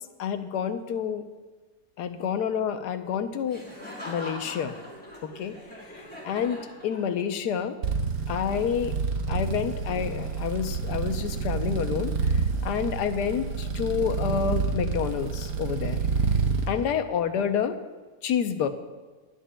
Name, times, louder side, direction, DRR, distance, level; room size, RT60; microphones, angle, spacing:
voice 1, 0.2-1.2 2.0-3.6 4.1-4.7 5.2-5.5 6.2-7.8 8.3-9.0 9.3-12.1 12.6-16.0 16.7-17.8 18.2-18.7, left 8 dB, 85° left, 9 dB, 1.3 m, -28 dB
Laughter, 3.5-7.4, left 1 dB, 5° left, 3.2 m, -42 dB
sound 1, 7.8-16.7, right 5 dB, 70° right, 1.3 m, -28 dB
22.5 x 9.9 x 2.2 m, 1.4 s
omnidirectional pair, 1.7 m